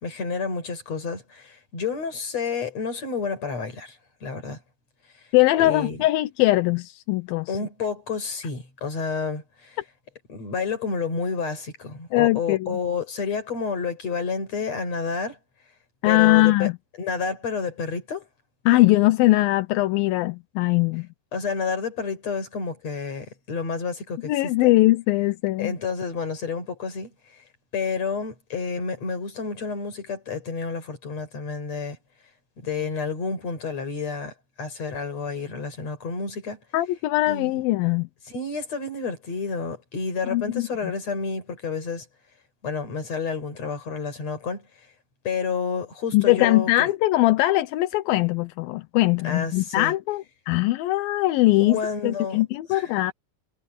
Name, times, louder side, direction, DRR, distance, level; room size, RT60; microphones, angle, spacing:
voice 1, 0.0-4.6 5.6-6.0 7.5-9.8 10.3-15.4 16.0-16.7 17.0-18.3 21.3-24.7 25.6-27.4 27.7-32.0 32.6-36.6 37.3-37.6 38.3-42.1 42.6-44.7 45.2-46.9 49.2-49.9 51.6-52.4 52.7-53.0, left 5 dB, 45° left, 6.3 m, -30 dB
voice 2, 5.3-7.5 12.1-12.8 16.0-16.7 18.7-21.1 24.3-25.7 36.7-38.1 40.3-40.7 46.1-51.8 52.0-53.1, left 18 dB, 85° left, 2.6 m, -21 dB
omnidirectional pair, 4.1 m